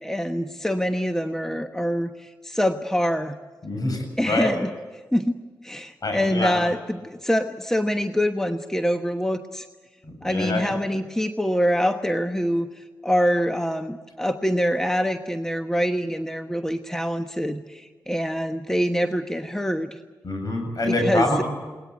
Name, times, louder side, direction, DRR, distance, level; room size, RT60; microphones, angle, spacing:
voice 1, 0.0-3.4 4.2-4.7 5.1-5.4 5.6-9.7 10.2-20.0 20.8-21.4, equal, 5° left, 7 dB, 1.2 m, -25 dB
voice 2, 3.6-4.5 6.0-6.6 10.0-10.8 20.2-21.4, left 2 dB, 55° left, 4 dB, 8.0 m, -25 dB
21.0 x 19.0 x 9.4 m, 1.3 s
supercardioid pair, 40°, 8 cm